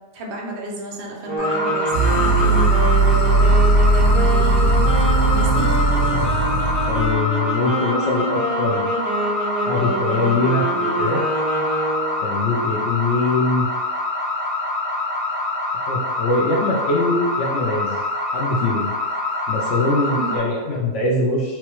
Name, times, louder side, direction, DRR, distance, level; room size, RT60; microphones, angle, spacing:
voice 1, 0.1-2.7 4.0-4.7 5.2-5.7 20.1-20.4, right 1 dB, 65° right, -1 dB, 0.5 m, -31 dB
sound 1, 1.2-12.2, right 1 dB, 80° right, 2.3 m, -26 dB
sound 2, 1.4-20.4, left 2 dB, 40° left, 1.1 m, -26 dB
sound 3, 1.9-7.1, right 2 dB, 85° left, 1.5 m, -18 dB
voice 2, 6.9-8.9 9.7-11.2 12.2-13.7 15.9-18.0 18.3-18.9 19.5-21.6, left 2 dB, 65° left, -2 dB, 0.7 m, -22 dB
4.6 x 2.2 x 2.9 m, 1.2 s
omnidirectional pair, 1.8 m